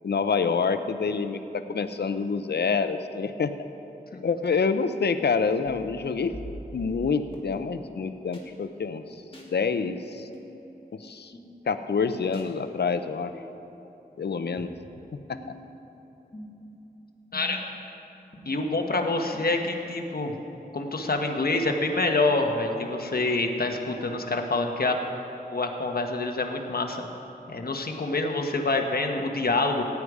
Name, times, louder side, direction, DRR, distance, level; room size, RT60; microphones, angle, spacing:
voice 1, 0.0-3.5 4.2-6.3 6.7-9.0 9.5-10.3 10.9-11.3 11.7-13.3 14.2-14.7, left 5 dB, 80° left, 10 dB, 0.6 m, -27 dB
sound 1, 5.6-7.4 8.3-8.4 9.3-9.5 10.3-10.5 11.3-11.5 12.3-12.5 13.3-13.5 14.3-14.4 15.3-15.6 16.3-16.7 17.3-17.7 18.3-18.4 19.3-19.4 20.3-20.4, left 1 dB, 35° left, 2.4 m, -43 dB
voice 2, 18.4-20.3 20.7-25.0 25.5-27.0 27.5-29.8, left 2 dB, 65° left, 3 dB, 1.2 m, -26 dB
16.5 x 9.6 x 4.9 m, 3.0 s
wide cardioid pair, 80°, 17 cm